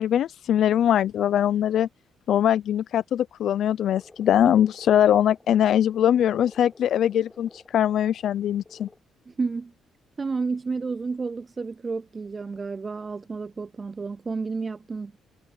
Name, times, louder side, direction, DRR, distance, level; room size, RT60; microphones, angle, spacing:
voice 1, 0.0-1.9 2.3-8.9, left 10 dB, 70° left, 0.4 m, -22 dB
Frog, 3.9-9.0, left 3 dB, 20° left, 4.7 m, -51 dB
voice 2, 9.3-9.7 10.2-15.1, right 4 dB, 30° right, 0.4 m, -31 dB
cardioid pair, 90°, 0 cm